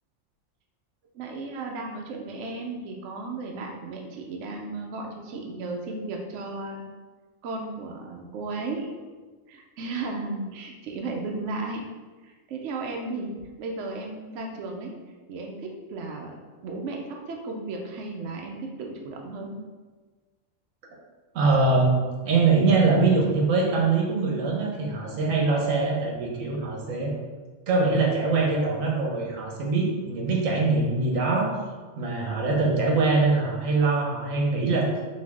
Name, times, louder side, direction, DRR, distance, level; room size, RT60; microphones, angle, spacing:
voice 1, 1.1-6.8 7.4-8.9 9.5-11.9 12.2-14.9 15.3-19.5 25.1-25.4, right 3 dB, 70° right, 1 dB, 0.8 m, -35 dB
voice 2, 21.3-21.9 22.2-27.1 27.7-31.5 32.0-34.9, right 3 dB, 85° right, -1 dB, 1.2 m, -23 dB
4.4 x 2.7 x 3.4 m, 1.3 s
omnidirectional pair, 1.4 m